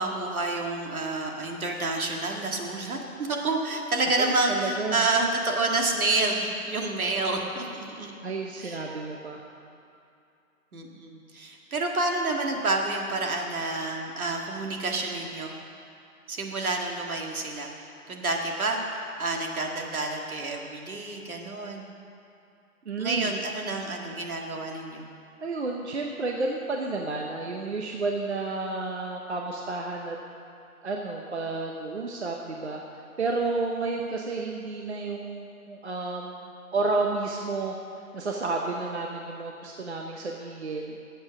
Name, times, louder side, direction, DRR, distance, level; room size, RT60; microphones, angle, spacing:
voice 1, 0.0-8.1 8.6-8.9 10.7-15.6 16.3-17.7 18.1-18.8 19.2-21.9 23.0-25.1, right 2 dB, 70° right, 1 dB, 1.9 m, -29 dB
voice 2, 4.2-5.1 8.2-9.4 22.9-23.4 25.4-30.2 30.8-32.8 33.2-41.0, right 3 dB, 50° right, 1 dB, 0.8 m, -31 dB
12.0 x 8.0 x 6.0 m, 2.6 s
hypercardioid pair, 170°, 45 cm